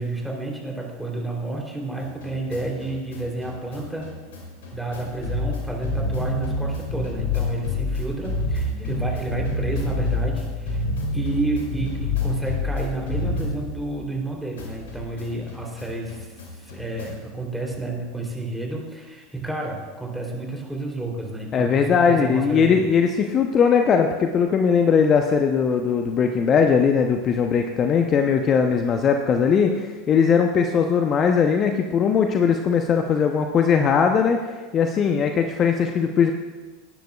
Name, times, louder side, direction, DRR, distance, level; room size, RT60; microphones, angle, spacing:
voice 1, 0.0-4.1 4.7-10.8 11.1-22.8, right 2 dB, 5° right, -1 dB, 3.3 m, -30 dB
sound 1, 2.0-14.3 14.6-17.3, left 2 dB, 70° left, 3.1 m, -28 dB
voice 2, 21.5-34.4 34.7-36.3, left 6 dB, 35° left, 5 dB, 0.8 m, -19 dB
18.5 x 10.5 x 2.4 m, 1.3 s
hypercardioid pair, 80°, 0 cm